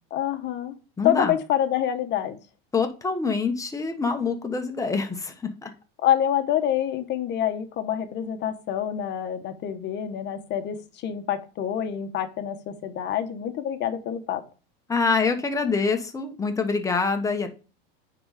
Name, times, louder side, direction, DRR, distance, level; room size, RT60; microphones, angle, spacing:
voice 1, 0.1-0.7 1.0-2.4 6.0-14.4, left 10 dB, 40° left, 7 dB, 1.1 m, -27 dB
voice 2, 1.0-1.3 2.7-5.7 14.9-17.5, left 4 dB, 10° left, 5 dB, 1.1 m, -25 dB
9.5 x 3.9 x 4.9 m, 0.34 s
supercardioid pair, 145°, 29 cm